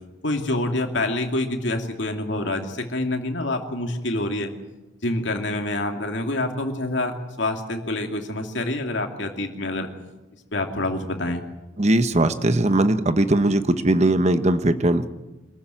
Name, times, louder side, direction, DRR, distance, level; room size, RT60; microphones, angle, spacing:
voice 1, 0.2-4.5 5.0-9.9 10.5-11.4, left 2 dB, 65° left, 3 dB, 2.6 m, -26 dB
voice 2, 11.8-15.1, right 1 dB, 35° right, 10 dB, 1.1 m, -19 dB
25.5 x 14.5 x 9.1 m, 1.1 s
head